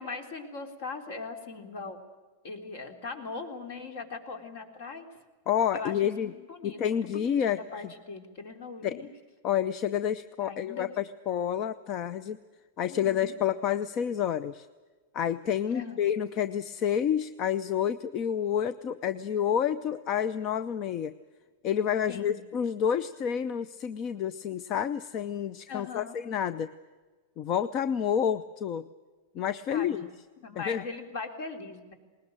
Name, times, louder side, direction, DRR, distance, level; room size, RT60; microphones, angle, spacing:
voice 1, 0.0-2.0 2.4-5.1 5.7-9.1 10.4-10.9 12.9-13.3 15.7-16.1 22.1-22.4 25.7-26.2 29.7-30.1 30.4-31.9, left 4 dB, 55° left, 6 dB, 3.7 m, -40 dB
voice 2, 5.5-6.3 6.6-7.6 8.8-9.0 9.4-12.4 12.8-14.7 15.1-21.1 21.6-26.7 27.4-28.9 29.3-30.1 30.6-30.8, left 9 dB, 30° left, 14 dB, 0.6 m, -29 dB
20.0 x 20.0 x 8.9 m, 1.3 s
supercardioid pair, 160°, 0 cm